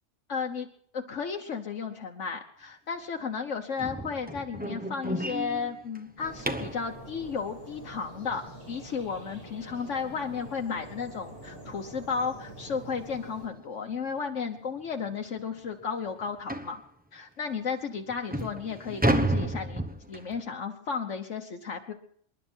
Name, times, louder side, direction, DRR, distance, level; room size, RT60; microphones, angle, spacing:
voice 1, 0.3-0.7 0.9-16.8 17.1-19.8 20.1-21.9, left 5 dB, 75° left, 3 dB, 1.4 m, -34 dB
sound 1, 3.8-6.9 9.7-9.8 10.3-10.5 10.8-10.9 11.4-11.5 12.6-12.7 13.1-13.3 13.9-14.0 14.4-14.5 15.0-15.1 16.5-16.8 17.5-17.6 18.1-20.4, right 1 dB, 10° right, 0.9 m, -31 dB
sound 2, 6.2-13.5, right 1 dB, 50° right, 5.5 m, -46 dB
27.0 x 11.5 x 4.5 m, 0.62 s
omnidirectional pair, 1.3 m